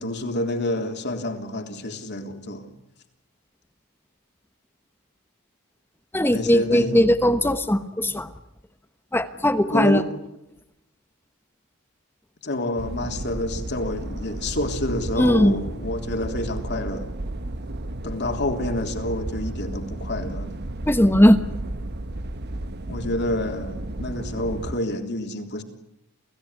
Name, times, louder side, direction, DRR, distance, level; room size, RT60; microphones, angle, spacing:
voice 1, 0.0-2.7 6.3-7.0 9.7-10.1 12.4-17.1 18.0-20.6 22.9-25.6, left 1 dB, 50° left, 5 dB, 3.5 m, -28 dB
voice 2, 6.1-8.3 9.1-10.0 15.2-15.5 20.9-21.4, equal, 10° left, 10 dB, 1.1 m, -18 dB
sound 1, 12.8-24.8, right 1 dB, 50° right, 1.2 m, -33 dB
29.0 x 17.0 x 9.8 m, 0.85 s
head